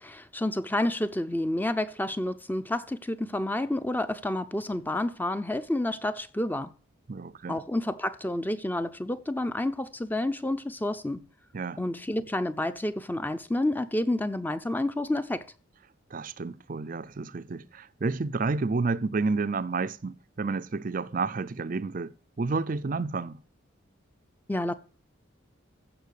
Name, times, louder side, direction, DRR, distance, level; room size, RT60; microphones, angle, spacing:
voice 1, 0.0-6.7 7.5-11.2 11.8-15.5 24.5-24.7, left 1 dB, 10° left, 0.6 m, -29 dB
voice 2, 7.1-7.6 11.5-11.8 16.1-22.1 22.4-23.4, right 4 dB, 40° right, 0.5 m, -30 dB
15.0 x 5.9 x 6.6 m
head